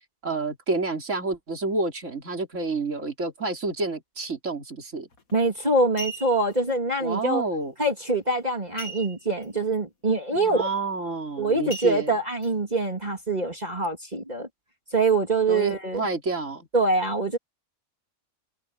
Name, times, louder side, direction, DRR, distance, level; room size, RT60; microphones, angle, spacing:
voice 1, 0.2-5.1 7.0-7.7 10.3-12.1 15.5-16.7, right 3 dB, 60° right, 3.9 m, -29 dB
sound 1, 5.1-5.3 5.8-6.6 8.8-9.5 9.8-9.9 10.4-10.6 11.7-12.5 13.1-13.2, right 1 dB, 85° left, 2.8 m, -38 dB
voice 2, 5.3-7.4 7.8-10.7 11.4-14.5 14.9-16.0 16.7-17.4, right 2 dB, 30° right, 3.3 m, -24 dB
open air
omnidirectional pair, 1.4 m